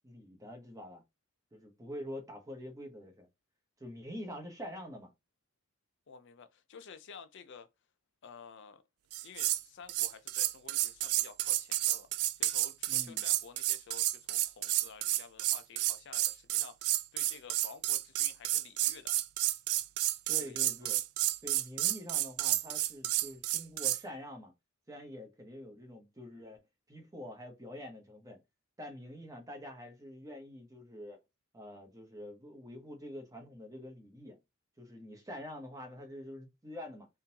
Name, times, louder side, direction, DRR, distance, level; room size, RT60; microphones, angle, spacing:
voice 1, 0.0-1.0 1.5-3.3 3.8-5.1 12.9-13.2 20.3-21.0 21.4-24.5 24.9-26.6 26.9-28.4 28.8-31.2 31.5-34.4 34.8-37.1, left 1 dB, 15° right, 0.9 m, -46 dB
voice 2, 6.1-7.7 8.2-8.8 9.2-12.1 12.4-19.1 20.4-20.9, left 6 dB, 55° left, 0.5 m, -52 dB
sound 1, 9.1-9.6 9.9-24.0, right 15 dB, 90° right, 0.3 m, -31 dB
3.7 x 2.7 x 2.8 m
head